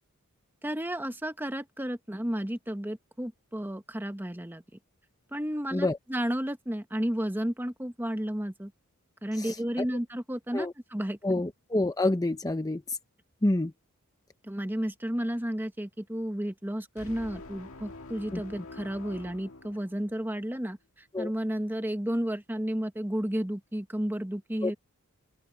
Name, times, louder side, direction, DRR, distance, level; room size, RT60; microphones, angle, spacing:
voice 1, 0.6-4.6 5.3-8.7 9.2-11.4 14.4-20.8 21.2-24.8, equal, 10° right, 1.1 m, -32 dB
voice 2, 11.2-13.0 13.4-13.7 18.3-18.4 21.1-21.3 24.6-24.7, left 2 dB, 15° left, 0.7 m, -27 dB
sound 1, 17.0-20.4, left 2 dB, 65° left, 2.0 m, -46 dB
open air
head